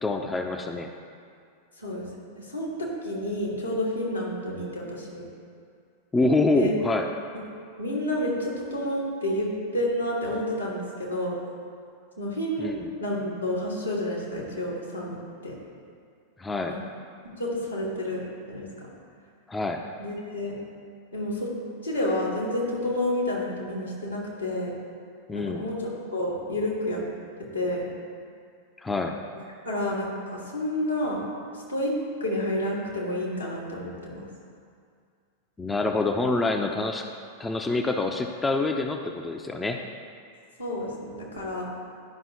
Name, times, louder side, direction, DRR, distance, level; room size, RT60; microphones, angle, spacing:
voice 1, 0.0-0.9 6.1-7.1 12.6-12.9 16.4-16.8 19.5-19.8 25.3-25.6 28.8-29.2 35.6-37.1 37.4-39.8, left 2 dB, 10° left, 4 dB, 0.4 m, -26 dB
voice 2, 2.4-5.2 6.5-6.7 7.8-11.4 12.2-12.7 13.0-15.6 16.7-16.8 17.4-18.2 18.5-18.9 20.0-20.5 21.1-21.5 21.8-24.7 25.3-27.0 27.4-27.8 29.3-31.2 31.5-31.9 32.2-34.2 40.6-41.7, left 1 dB, 85° left, -4 dB, 1.7 m, -30 dB
11.0 x 5.4 x 2.9 m, 2.2 s
figure-of-eight pair, 90°, 0 cm